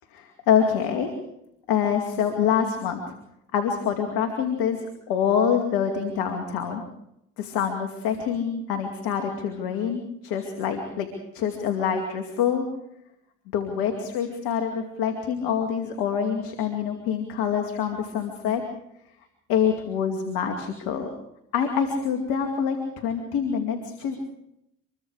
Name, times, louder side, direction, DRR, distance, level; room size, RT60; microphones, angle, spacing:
voice 1, 0.1-1.1 1.7-3.1 3.5-6.8 7.4-11.1 11.3-12.6 13.5-18.6 19.5-21.1 21.5-24.2, left 7 dB, 85° left, 5 dB, 2.5 m, -26 dB
26.0 x 23.0 x 4.9 m, 0.80 s
supercardioid pair, 50°, 35 cm